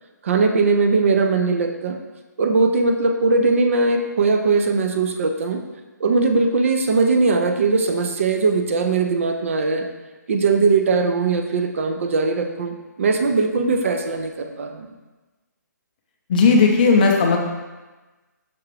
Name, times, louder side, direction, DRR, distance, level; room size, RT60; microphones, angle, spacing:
voice 1, 0.2-2.0 2.4-5.6 6.0-9.8 10.3-14.9, right 4 dB, 45° right, 5 dB, 0.4 m, -20 dB
voice 2, 16.3-17.4, left 4 dB, 25° left, 1 dB, 0.5 m, -15 dB
5.8 x 2.4 x 3.2 m, 1.2 s
hypercardioid pair, 165°, 10 cm